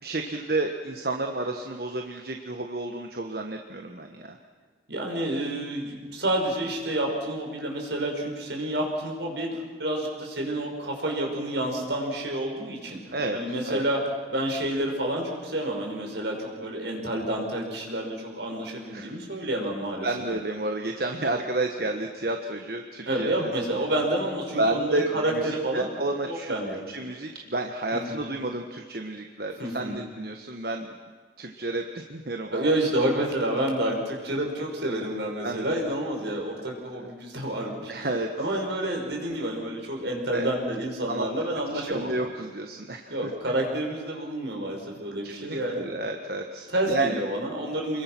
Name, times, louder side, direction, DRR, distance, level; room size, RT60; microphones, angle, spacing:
voice 1, 0.0-4.4 13.1-13.4 13.7-13.8 18.9-19.1 20.0-23.5 24.6-26.5 26.9-30.9 31.4-32.7 35.4-35.8 37.0-37.1 37.9-38.3 40.3-40.5 41.1-41.3 41.7-43.3 45.2-47.2, right 2 dB, 55° right, 4 dB, 1.3 m, -31 dB
voice 2, 4.9-14.0 14.3-20.1 23.1-25.9 26.3-26.8 27.9-28.2 29.6-30.0 32.5-42.1 43.1-45.8 46.7-48.0, right 1 dB, 75° right, 0 dB, 5.9 m, -29 dB
29.5 x 22.0 x 6.1 m, 1.5 s
head